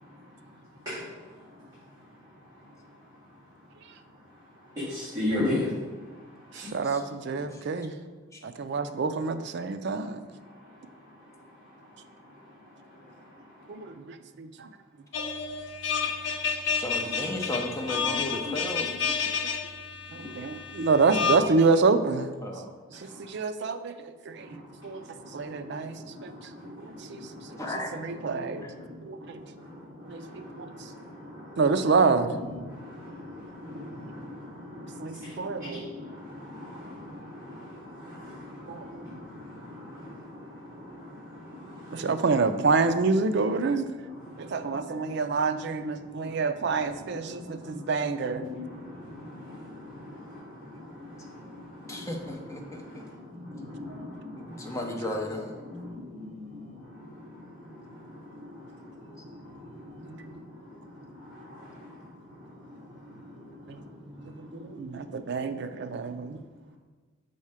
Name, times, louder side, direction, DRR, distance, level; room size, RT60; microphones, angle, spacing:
voice 1, 4.8-5.7 6.5-6.7 9.9-10.0 20.2-20.3 24.9-27.6 28.3-28.4 28.7-28.8 29.1-31.6 32.7-42.1 44.0-44.7 45.0-45.1 46.2-46.3 47.1-47.8 48.3-52.1 52.6-54.8 55.7-56.6 57.0-57.2 57.8-58.7 59.0-59.1 59.4-60.4 61.2-61.9 64.5-64.6, left 1 dB, 15° right, -12 dB, 1.9 m, -39 dB
voice 2, 6.5-8.0 8.4-10.2 13.7-14.7 20.1-22.3 22.9-25.0 25.3-25.9 26.2-26.3 26.8-27.2 27.9-28.7 29.0-29.4 30.1-30.7 31.6-32.4 35.0-35.8 38.7-38.9 41.9-43.9 44.4-48.4 60.0-60.1 63.7-63.8 64.4-66.4, right 4 dB, 50° right, 9 dB, 0.4 m, -27 dB
voice 3, 7.4-7.7 8.3-8.4 16.8-18.9 22.4-22.7 27.6-28.0 28.6-28.7 51.9-53.0 54.3-55.6, left 1 dB, 15° left, 1 dB, 0.7 m, -35 dB
sound 1, 15.1-21.4, left 6 dB, 55° left, 0.5 m, -30 dB
5.6 x 4.2 x 4.8 m, 1.3 s
head